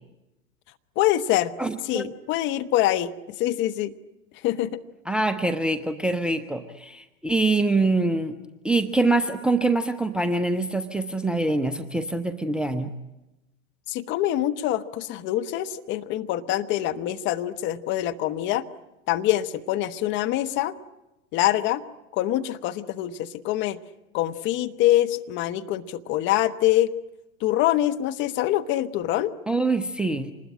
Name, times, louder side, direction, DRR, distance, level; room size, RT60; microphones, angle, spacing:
voice 1, 1.0-1.5 1.8-3.9 4.4-4.8 13.9-18.7 19.1-20.7 21.3-21.8 22.1-23.8 24.1-26.9 27.4-29.3, left 13 dB, 30° left, 10 dB, 1.1 m, -25 dB
voice 2, 1.6-2.1 5.1-8.3 8.6-12.9 29.5-30.3, right 2 dB, ahead, 8 dB, 0.8 m, -24 dB
26.5 x 20.5 x 10.0 m, 0.99 s
figure-of-eight pair, 100°, 40 cm